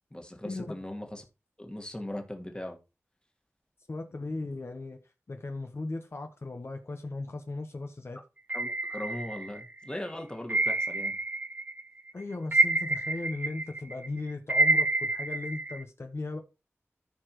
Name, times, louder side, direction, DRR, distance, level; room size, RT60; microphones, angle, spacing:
voice 1, 0.1-1.3 1.6-2.8 8.5-11.2, left 1 dB, 20° left, 1.8 m, -39 dB
voice 2, 3.9-5.0 5.3-8.2 12.1-16.4, left 2 dB, 60° left, 1.1 m, -37 dB
sound 1, 8.5-9.8 10.5-11.8 12.1-15.8, right 2 dB, 35° right, 0.5 m, -28 dB
14.0 x 4.9 x 3.1 m
wide cardioid pair, 55°, 5 cm